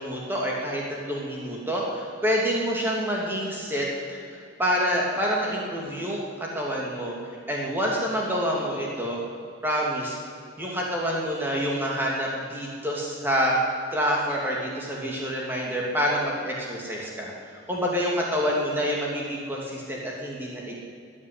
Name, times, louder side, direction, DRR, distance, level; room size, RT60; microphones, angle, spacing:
voice 1, 0.0-4.2 4.6-6.2 6.5-7.1 7.5-9.2 9.6-10.2 10.6-13.5 13.9-20.8, equal, 10° right, -3 dB, 2.8 m, -27 dB
14.5 x 9.7 x 10.0 m, 2.4 s
head